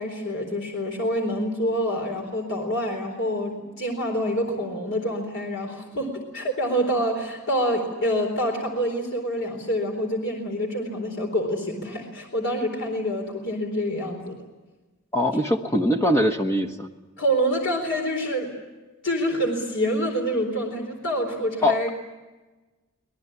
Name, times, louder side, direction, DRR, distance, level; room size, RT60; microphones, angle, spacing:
voice 1, 0.0-14.4 17.2-18.5 19.0-21.9, equal, 55° left, 2 dB, 4.1 m, -26 dB
voice 2, 15.1-16.9 21.6-21.8, left 1 dB, 15° left, 4 dB, 1.2 m, -22 dB
26.0 x 19.5 x 9.8 m, 1.2 s
head